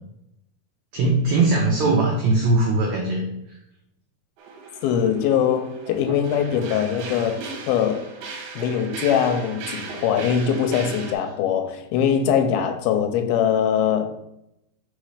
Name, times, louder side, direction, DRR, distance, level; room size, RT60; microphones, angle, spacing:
voice 1, 0.9-3.2, right 2 dB, 90° right, 1.6 m, -20 dB
sound 1, 4.4-11.1, right 4 dB, 70° right, 2.0 m, -37 dB
voice 2, 4.8-7.4 7.7-8.0 8.6-14.2, left 8 dB, 90° left, 2.5 m, -22 dB
5.5 x 3.9 x 4.9 m
omnidirectional pair, 4.3 m